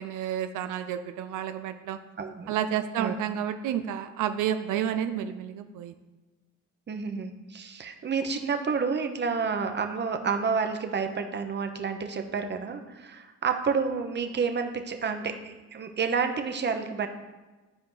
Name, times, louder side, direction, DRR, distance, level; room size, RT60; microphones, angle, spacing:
voice 1, 0.0-2.0 2.5-5.9, right 10 dB, 90° right, 8 dB, 0.5 m, -30 dB
voice 2, 2.2-2.5 3.0-3.1 6.9-17.1, right 5 dB, 35° right, 6 dB, 0.9 m, -29 dB
12.0 x 4.7 x 3.9 m, 1.2 s
cardioid pair, 90°, 30 cm